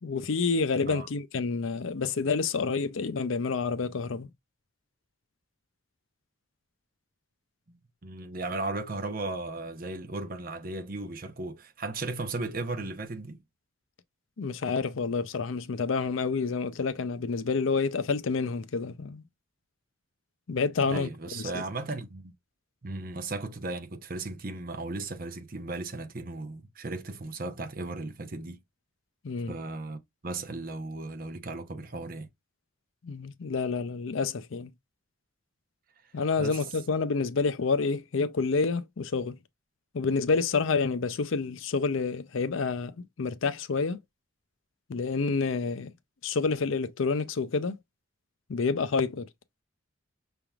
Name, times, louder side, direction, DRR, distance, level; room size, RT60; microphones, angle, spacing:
voice 1, 0.0-4.3 14.4-19.2 20.5-21.6 29.2-29.5 33.0-34.7 36.1-39.4 39.9-44.0 44.9-45.9 46.2-47.8 48.5-49.3, left 4 dB, 70° left, 0.5 m, -28 dB
voice 2, 7.7-13.4 20.8-22.3 22.8-28.6 29.5-32.3 36.0-36.1 36.4-36.6, right 2 dB, 45° right, 0.7 m, -36 dB
5.8 x 3.4 x 2.3 m
head